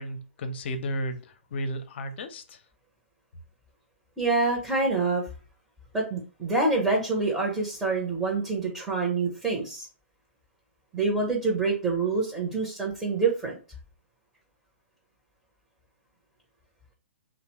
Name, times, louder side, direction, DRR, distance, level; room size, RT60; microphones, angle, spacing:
voice 1, 0.0-2.6, equal, 55° left, 0.5 m, -33 dB
voice 2, 4.2-5.2 5.9-9.9 10.9-13.6, right 3 dB, 10° right, 0.7 m, -26 dB
2.7 x 2.1 x 3.0 m
hypercardioid pair, 125°, 7 cm